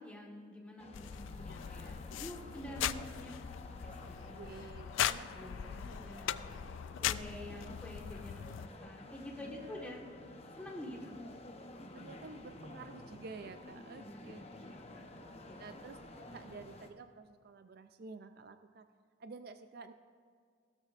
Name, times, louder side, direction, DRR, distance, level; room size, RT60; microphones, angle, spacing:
voice 1, 0.0-3.4 4.3-4.9 5.3-5.8 6.1-6.4 7.0-10.1 10.6-11.2 13.9-15.6, left 1 dB, 5° left, -1 dB, 1.5 m, -48 dB
sound 1, 0.8-16.9, left 1 dB, 30° left, 0.8 m, -51 dB
sound 2, 0.9-8.7, left 10 dB, 75° left, 0.3 m, -39 dB
voice 2, 4.3-6.8 9.5-10.0 11.9-14.4 15.6-16.0 16.3-18.9 19.2-19.9, right 4 dB, 50° right, 9 dB, 0.4 m, -51 dB
16.5 x 13.0 x 2.5 m, 2.1 s
head